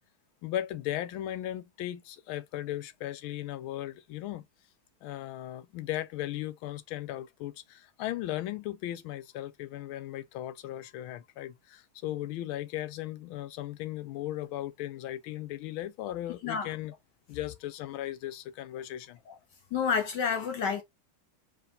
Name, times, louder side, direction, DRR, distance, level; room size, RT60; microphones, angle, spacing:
voice 1, 0.4-4.5 5.0-16.9 17.3-19.2, left 13 dB, 85° left, 1.4 m, -37 dB
voice 2, 19.7-20.8, left 6 dB, 65° left, 1.3 m, -29 dB
4.9 x 2.9 x 3.7 m
omnidirectional pair, 2.2 m